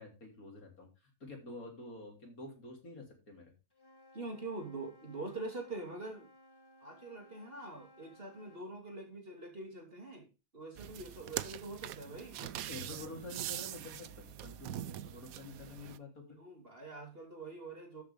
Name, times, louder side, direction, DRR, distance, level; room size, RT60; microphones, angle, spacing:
voice 1, 0.0-3.5 12.4-16.4, left 2 dB, 60° left, 1 dB, 4.0 m, -48 dB
Wind instrument woodwind instrument, 3.7-8.7, left 1 dB, 15° left, 1.2 m, -61 dB
voice 2, 4.1-6.3 6.8-10.3 10.5-12.4 16.4-18.0, right 2 dB, 35° right, 3 dB, 2.9 m, -44 dB
sound 1, 10.8-16.0, right 12 dB, 70° right, 1.0 m, -43 dB
13.0 x 7.3 x 3.6 m, 0.29 s
omnidirectional pair, 1.7 m